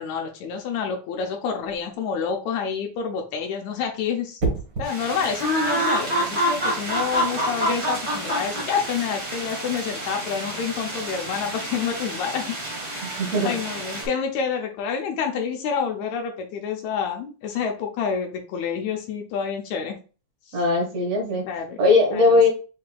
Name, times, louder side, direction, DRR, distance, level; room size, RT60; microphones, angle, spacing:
voice 1, 0.0-12.6 12.9-13.2 13.4-20.0 20.5-20.6 21.4-21.8 22.1-22.4, left 6 dB, 75° left, 3 dB, 1.8 m, -28 dB
sound 1, 1.6-1.9 4.4-4.9 6.9-7.2, right 3 dB, 45° right, 1.2 m, -28 dB
sound 2, 4.8-14.1, right 1 dB, 85° right, 0.6 m, -28 dB
voice 2, 13.0-13.5 20.5-21.4 21.8-22.5, left 2 dB, 60° right, 0 dB, 2.2 m, -19 dB
6.5 x 2.7 x 2.2 m, 0.35 s
omnidirectional pair, 3.5 m